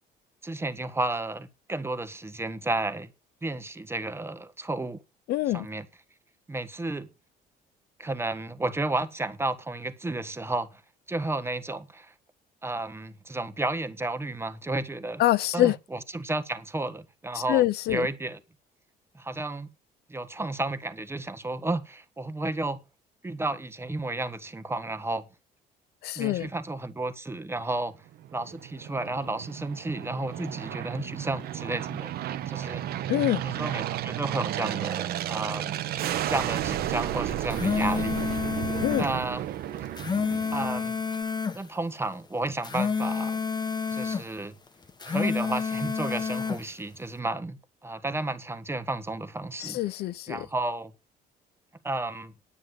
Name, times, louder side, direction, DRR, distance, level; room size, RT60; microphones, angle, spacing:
voice 1, 0.4-3.1 3.4-5.0 5.5-5.8 6.5-7.1 8.0-10.8 11.1-12.1 12.6-15.2 15.5-18.4 19.1-19.7 20.1-22.8 23.2-25.2 26.1-27.9 28.3-32.1 32.5-32.8 33.4-35.8 36.3-38.2 39.0-39.4 40.5-41.0 41.5-43.4 43.9-44.5 45.0-49.8 50.3-50.9 51.8-52.3, right 2 dB, 15° right, 1.4 m, -32 dB
voice 2, 5.3-5.7 15.2-15.8 17.5-18.1 26.0-26.5 33.1-33.4 38.8-39.1 49.6-50.5, left 14 dB, 70° left, 0.6 m, -25 dB
Aircraft, 28.2-40.9, right 12 dB, 70° right, 1.1 m, -33 dB
sound 1, 37.3-39.1 39.8-41.6 42.5-44.3 44.9-46.6, left 5 dB, 25° left, 1.4 m, -29 dB
9.8 x 9.3 x 5.3 m
cardioid pair, 110°, 17 cm